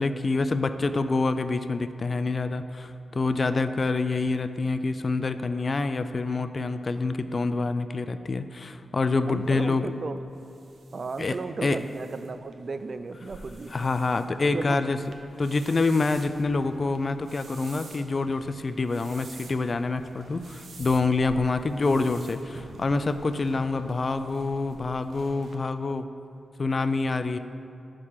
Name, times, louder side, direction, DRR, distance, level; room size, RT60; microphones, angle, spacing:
voice 1, 0.0-9.9 11.2-11.4 11.6-11.8 13.7-15.0 15.4-26.1 26.6-27.4, left 3 dB, 45° left, 10 dB, 0.4 m, -26 dB
voice 2, 9.3-10.2 10.9-13.8 14.5-14.8 15.7-15.8, right 4 dB, 55° right, 11 dB, 0.4 m, -35 dB
sound 1, 9.4-25.6, right 3 dB, 75° right, 0.8 m, -49 dB
11.0 x 3.8 x 6.5 m, 2.6 s
cardioid pair, 75°, 0 cm